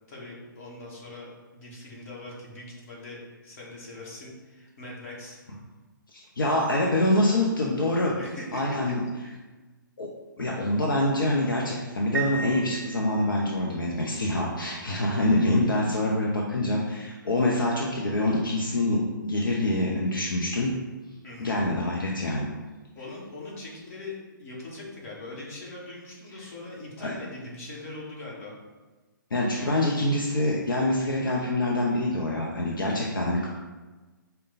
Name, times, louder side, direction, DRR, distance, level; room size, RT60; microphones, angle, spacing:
voice 1, 0.1-3.2 3.4-5.4 8.2-8.9 9.2-9.4 21.2-21.6 23.0-28.5, left 2 dB, 40° left, -4 dB, 1.3 m, -41 dB
voice 2, 6.4-8.1 8.5-9.0 10.0-10.1 10.4-20.7 21.4-22.5 27.0-27.1 29.3-33.5, left 1 dB, 70° left, -2 dB, 0.6 m, -25 dB
Piano, 12.1-13.6, right 4 dB, 60° right, 0.4 m, -35 dB
5.0 x 2.2 x 3.9 m, 1.2 s
figure-of-eight pair, 125°, 11 cm